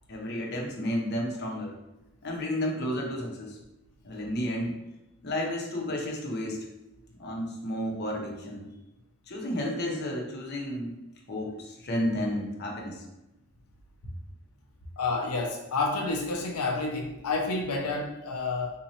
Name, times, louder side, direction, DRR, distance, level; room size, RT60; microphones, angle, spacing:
voice 1, 0.1-1.8 2.2-3.6 4.0-4.7 5.2-6.7 7.2-8.7 9.3-10.9 11.3-13.0, equal, 50° left, -1 dB, 0.7 m, -32 dB
voice 2, 15.0-18.7, left 3 dB, 90° left, 1 dB, 0.5 m, -29 dB
3.7 x 3.0 x 2.8 m, 0.94 s
head